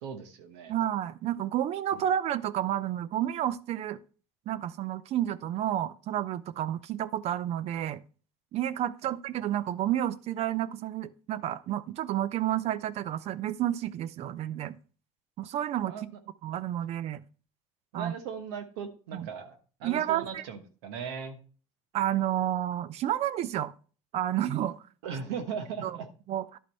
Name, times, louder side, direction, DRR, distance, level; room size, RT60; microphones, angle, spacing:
voice 1, 0.0-0.7 1.9-2.0 15.9-16.0 17.9-21.4 25.0-26.1, right 6 dB, 90° right, 1.2 m, -38 dB
voice 2, 0.7-4.0 4.5-8.0 8.5-14.7 15.4-15.9 16.4-17.2 17.9-18.1 19.1-19.3 19.8-20.4 21.9-23.7 24.1-24.8 25.8-26.0 26.3-26.6, right 11 dB, 55° right, 0.6 m, -30 dB
11.0 x 4.3 x 4.1 m
supercardioid pair, 105°, 13 cm